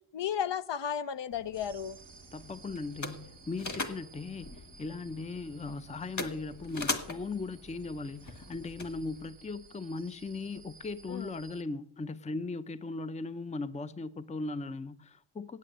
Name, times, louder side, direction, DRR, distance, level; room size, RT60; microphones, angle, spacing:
voice 1, 0.1-2.0 11.1-11.3, left 8 dB, 60° left, 0.6 m, -34 dB
sound 1, 1.3-9.3, left 2 dB, 35° left, 1.5 m, -41 dB
sound 2, 1.5-11.6, right 6 dB, 90° right, 0.9 m, -56 dB
voice 2, 2.3-15.6, left 3 dB, 15° left, 0.5 m, -38 dB
8.5 x 8.5 x 8.9 m
wide cardioid pair, 80°, 48 cm